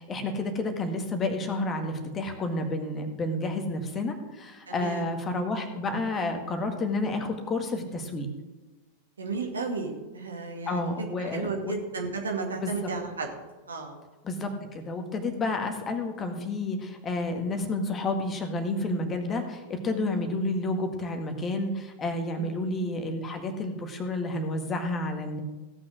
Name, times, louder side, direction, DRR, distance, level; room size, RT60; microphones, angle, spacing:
voice 1, 0.0-8.3 10.7-11.7 12.6-12.9 14.2-25.4, left 2 dB, 25° left, 5 dB, 1.8 m, -30 dB
voice 2, 4.7-5.1 9.2-10.9 11.2-13.3 13.7-14.0 22.4-22.5, right 4 dB, 70° right, 2 dB, 2.1 m, -33 dB
16.5 x 6.3 x 6.4 m, 1.2 s
figure-of-eight pair, 90°, 0 cm